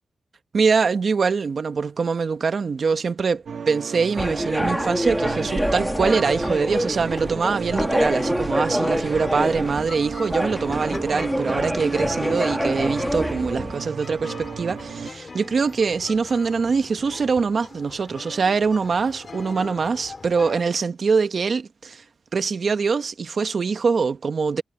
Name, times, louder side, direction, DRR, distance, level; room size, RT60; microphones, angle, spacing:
voice 1, 0.5-22.0 22.3-24.6, right 5 dB, 55° right, 1.2 m, -23 dB
sound 1, 3.5-15.1, right 6 dB, 70° right, 1.2 m, -34 dB
sound 2, 4.2-13.8, equal, ahead, 1.6 m, -26 dB
sound 3, 5.6-20.6, left 4 dB, 40° left, 3.1 m, -41 dB
wide cardioid pair, 110°, 0 cm